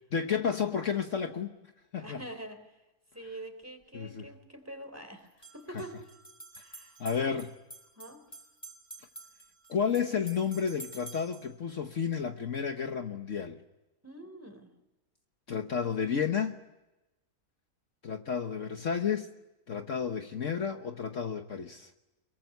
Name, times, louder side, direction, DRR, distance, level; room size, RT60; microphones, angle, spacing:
voice 1, 0.1-1.6 1.9-2.2 3.9-4.3 7.0-7.5 9.7-13.6 15.5-16.6 18.0-19.3 19.7-21.9, left 6 dB, 55° left, 1.4 m, -31 dB
voice 2, 2.0-2.6 3.1-6.2 6.6-7.4 8.0-8.2 14.0-14.7, right 1 dB, 10° right, 3.5 m, -45 dB
sound 1, 3.6-3.7 5.3-11.5, right 2 dB, 10° left, 4.0 m, -50 dB
23.5 x 23.0 x 9.3 m
omnidirectional pair, 1.6 m